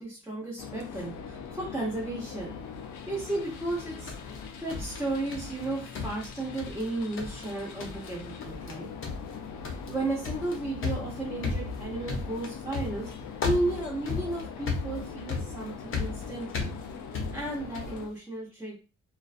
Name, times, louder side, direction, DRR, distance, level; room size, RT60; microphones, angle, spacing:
voice 1, 0.0-2.6 3.1-4.1 4.6-8.9 9.9-13.1 13.4-16.7 17.3-18.8, right 2 dB, 5° right, -8 dB, 1.0 m, -33 dB
sound 1, 0.6-18.1, left 6 dB, 75° left, 0.5 m, -42 dB
sound 2, 3.7-5.6 5.9-6.9 7.2-7.5 7.8-8.1 8.4-8.7 9.0-18.0, left 4 dB, 45° left, 0.7 m, -35 dB
2.3 x 2.2 x 2.4 m, 0.31 s
cardioid pair, 90°, 30 cm